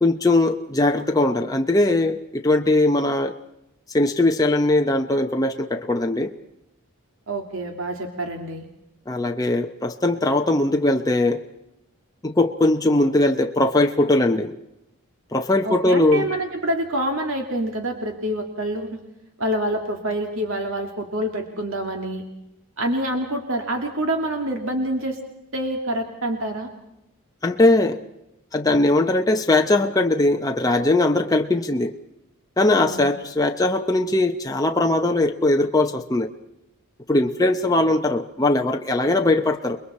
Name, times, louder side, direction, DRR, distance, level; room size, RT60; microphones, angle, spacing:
voice 1, 0.0-3.4 3.9-6.3 9.1-11.4 12.2-14.5 15.3-16.3 27.4-28.0 28.5-31.9 32.6-36.3 37.1-39.8, left 2 dB, 15° left, 4 dB, 0.8 m, -20 dB
voice 2, 7.3-8.7 15.6-19.0 19.4-22.2 22.8-25.2 25.5-26.7 32.7-33.0, right 1 dB, 60° right, 3 dB, 2.4 m, -26 dB
29.5 x 21.0 x 4.3 m, 0.86 s
head